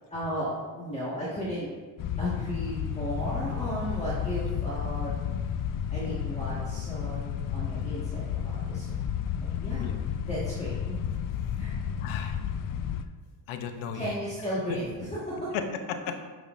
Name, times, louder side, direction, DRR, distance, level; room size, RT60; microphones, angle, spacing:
voice 1, 0.1-1.7 2.2-5.2 5.9-8.9 9.6-9.9 10.3-11.0 11.5-11.7 13.9-15.5, equal, 15° left, -9 dB, 1.6 m, -34 dB
sound 1, 2.0-13.0, left 8 dB, 45° left, 0.5 m, -32 dB
voice 2, 12.0-12.4 13.5-14.1 14.7-14.8 15.5-16.1, left 7 dB, 80° left, 7 dB, 0.9 m, -34 dB
9.2 x 5.8 x 2.6 m, 1.4 s
cardioid pair, 95°, 46 cm